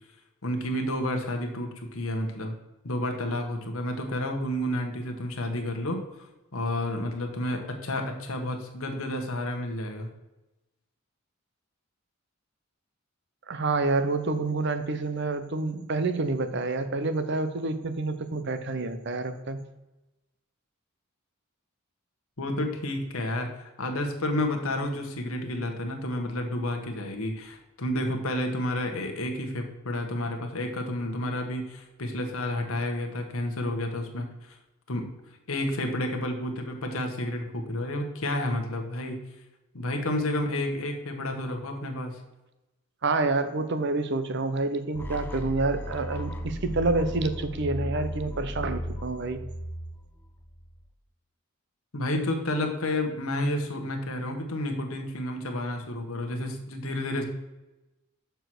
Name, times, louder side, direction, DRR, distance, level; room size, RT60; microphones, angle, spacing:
voice 1, 0.4-2.5 2.8-10.1 22.4-34.6 34.9-35.1 35.5-39.2 39.7-42.2 51.9-57.2, left 1 dB, 75° left, 3 dB, 1.2 m, -30 dB
voice 2, 13.5-19.6 43.0-49.4, right 3 dB, 55° right, 10 dB, 0.7 m, -28 dB
sound 1, 44.9-50.9, equal, 10° left, 0.7 m, -35 dB
6.9 x 4.6 x 6.0 m, 1.0 s
head